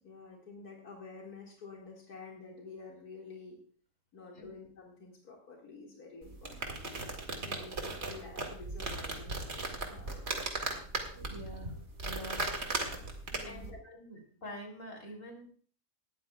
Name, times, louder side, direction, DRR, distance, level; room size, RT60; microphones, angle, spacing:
voice 1, 0.0-3.6 4.1-6.8 7.4-10.6 13.3-13.8, left 4 dB, 85° left, -2 dB, 2.6 m, -50 dB
sound 1, 6.2-13.7, right 2 dB, 45° right, 2.3 m, -37 dB
voice 2, 11.3-11.7 12.1-12.5 13.4-15.5, equal, 60° left, 1 dB, 3.7 m, -46 dB
19.0 x 13.0 x 2.3 m, 0.44 s
omnidirectional pair, 1.6 m